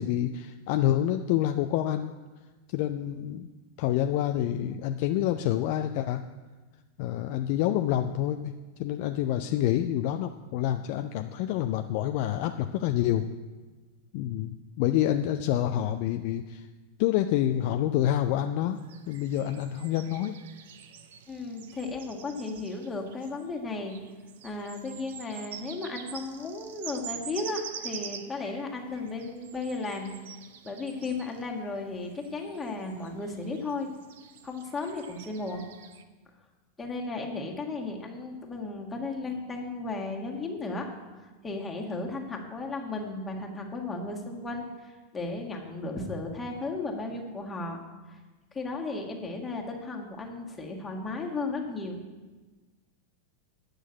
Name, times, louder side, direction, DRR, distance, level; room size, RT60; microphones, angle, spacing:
voice 1, 0.0-2.1 2.7-3.5 3.8-6.2 7.0-8.5 8.8-13.3 14.1-16.7 17.0-18.8 19.1-20.3, left 12 dB, 45° left, 7 dB, 0.4 m, -27 dB
sound 1, 18.7-36.0, right 8 dB, 55° right, 0.7 m, -46 dB
voice 2, 21.3-24.0 24.4-30.1 30.6-33.9 34.4-35.7 36.8-40.9 41.4-47.8 48.1-48.2 48.5-52.0, left 3 dB, 15° left, 0 dB, 1.7 m, -35 dB
9.1 x 6.3 x 8.5 m, 1.3 s
figure-of-eight pair, 90°, 0 cm